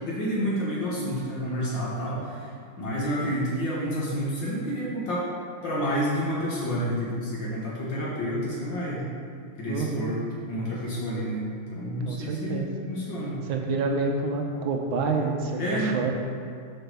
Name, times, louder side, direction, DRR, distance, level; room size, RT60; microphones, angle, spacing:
voice 1, 0.0-2.5 2.8-5.3 5.6-9.1 9.6-10.2 10.5-13.4 15.6-15.9, equal, 60° left, -6 dB, 1.9 m, -29 dB
voice 2, 9.7-10.2 12.0-12.7 13.5-16.1, right 4 dB, 75° right, 2 dB, 1.5 m, -28 dB
6.7 x 4.6 x 6.5 m, 2.3 s
omnidirectional pair, 2.4 m